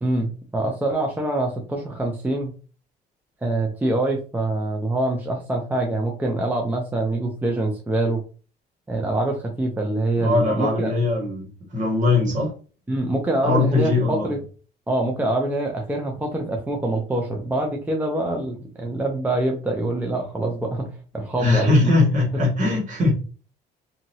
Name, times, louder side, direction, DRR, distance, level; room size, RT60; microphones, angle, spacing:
voice 1, 0.0-2.5 3.4-8.2 8.9-10.9 12.9-14.4 14.9-21.9, right 2 dB, 10° right, 0 dB, 0.6 m, -25 dB
voice 2, 10.2-12.5 13.4-14.4 21.4-23.1, left 2 dB, 50° right, -1 dB, 1.7 m, -21 dB
2.8 x 2.7 x 2.7 m, 0.37 s
cardioid pair, 110°, 17 cm